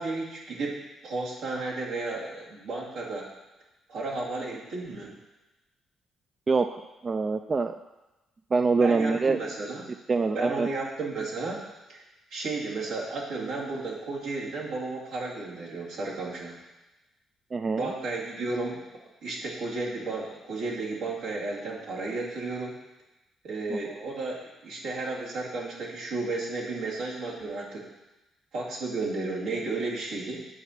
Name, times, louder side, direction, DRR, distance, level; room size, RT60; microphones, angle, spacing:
voice 1, 0.0-3.3 3.9-5.1 8.8-9.9 10.3-11.6 11.9-12.0 12.3-16.6 17.8-18.8 19.2-22.8 23.4-27.9 28.5-30.4, right 3 dB, 85° right, -5 dB, 2.4 m, -33 dB
voice 2, 6.5-7.7 8.5-9.4 10.1-10.7 17.5-17.9 23.7-23.8, right 4 dB, 35° right, 8 dB, 0.3 m, -25 dB
8.6 x 4.4 x 6.5 m, 1.0 s
cardioid pair, 90°, 0 cm